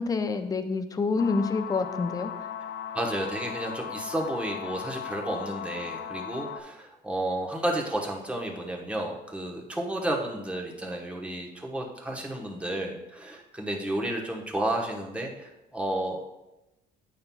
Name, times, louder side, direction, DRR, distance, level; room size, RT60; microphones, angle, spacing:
voice 1, 0.0-2.3, left 4 dB, 20° left, 8 dB, 0.5 m, -27 dB
sound 1, 1.2-6.6, left 8 dB, 80° left, 0.4 m, -37 dB
voice 2, 2.9-16.3, right 1 dB, 5° right, -1 dB, 1.1 m, -32 dB
8.7 x 5.6 x 2.3 m, 0.94 s
cardioid pair, 110°, 17 cm